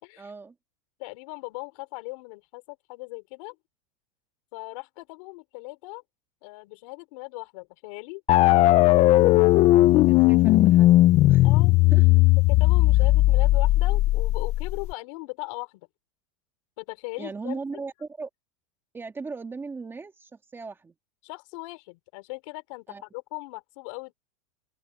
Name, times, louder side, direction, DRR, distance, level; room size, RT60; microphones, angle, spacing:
voice 1, 0.2-0.5 9.9-10.9 11.3-11.5 11.9-12.0 17.2-18.3 18.9-20.9 22.9-23.0, right 4 dB, 10° right, 2.3 m, -37 dB
voice 2, 1.0-3.6 4.5-6.0 6.4-8.2 11.4-11.7 12.5-15.8 16.8-17.6 21.2-24.1, left 26 dB, 60° left, 4.6 m, -39 dB
sound 1, 8.3-14.9, left 17 dB, 35° left, 0.7 m, -18 dB
open air
supercardioid pair, 145°, 18 cm